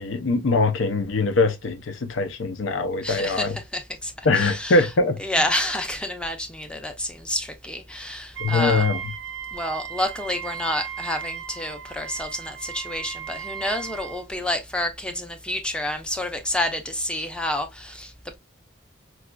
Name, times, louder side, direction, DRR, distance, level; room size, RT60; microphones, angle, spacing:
voice 1, 0.0-3.6 4.2-5.2 8.4-9.0, left 3 dB, 80° left, 0.5 m, -22 dB
voice 2, 3.0-4.9 5.2-8.9 9.5-18.4, left 1 dB, 5° left, 0.5 m, -29 dB
Wind instrument woodwind instrument, 8.3-14.3, right 9 dB, 70° right, 0.5 m, -36 dB
4.8 x 2.3 x 2.2 m
head